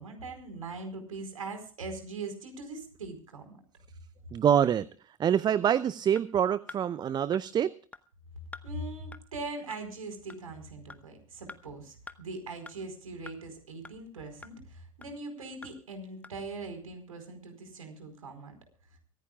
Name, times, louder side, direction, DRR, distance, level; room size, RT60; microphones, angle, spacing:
voice 1, 0.0-3.6 8.6-18.5 18.9-19.0, right 3 dB, 75° right, 6 dB, 4.6 m, -41 dB
voice 2, 4.3-4.8 5.2-7.7, right 9 dB, 25° right, 17 dB, 0.6 m, -25 dB
sound 1, 6.1-6.2 6.7-6.8 7.3-7.4 7.9-8.0 8.5-8.7 9.1-9.2 9.7-9.8 10.3-10.4 10.9-11.0 11.5-11.6 12.1-12.2 12.7-12.8 13.3-13.4 13.8-13.9 14.4-14.5 15.0-15.1 15.6-15.7 16.2-16.3, left 3 dB, 10° left, 1.0 m, -45 dB
24.0 x 15.5 x 2.3 m, 0.42 s
figure-of-eight pair, 85°, 18 cm